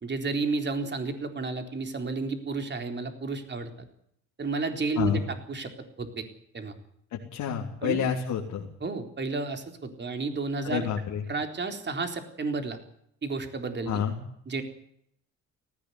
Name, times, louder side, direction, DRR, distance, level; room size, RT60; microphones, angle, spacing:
voice 1, 0.0-3.7 4.4-5.2 5.5-5.7 6.0-6.2 6.5-6.7 7.8-8.0 8.8-10.9 11.3-12.8 13.2-14.0 14.5-14.6, right 3 dB, 35° right, 6 dB, 3.9 m, -31 dB
voice 2, 7.1-8.6 10.6-11.2 13.9-14.2, left 8 dB, 85° left, -1 dB, 3.5 m, -29 dB
19.0 x 15.0 x 9.7 m, 0.71 s
cardioid pair, 90°, 30 cm